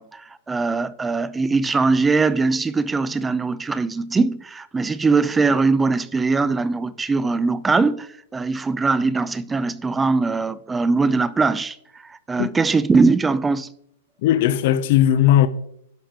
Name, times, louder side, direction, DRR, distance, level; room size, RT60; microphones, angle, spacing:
voice 1, 0.0-11.8 12.0-13.7, right 4 dB, 10° right, 0.5 m, -21 dB
voice 2, 14.2-15.5, left 11 dB, 55° left, 0.6 m, -17 dB
12.0 x 5.0 x 4.4 m
hypercardioid pair, 125°, 0 cm